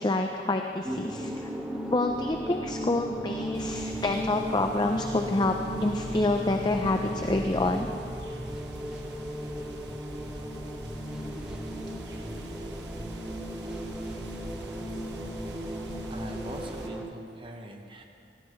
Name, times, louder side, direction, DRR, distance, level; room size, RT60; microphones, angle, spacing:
voice 1, 0.0-1.5 1.9-5.5 5.8-7.9, left 2 dB, 25° left, 4 dB, 0.6 m, -27 dB
sound 1, 0.8-17.1, equal, 5° right, 1.2 m, -36 dB
sound 2, 3.5-16.9, right 2 dB, 75° right, 1.2 m, -44 dB
voice 2, 16.1-18.0, right 1 dB, 30° right, 3 dB, 1.1 m, -43 dB
20.0 x 16.0 x 3.2 m, 2.4 s
head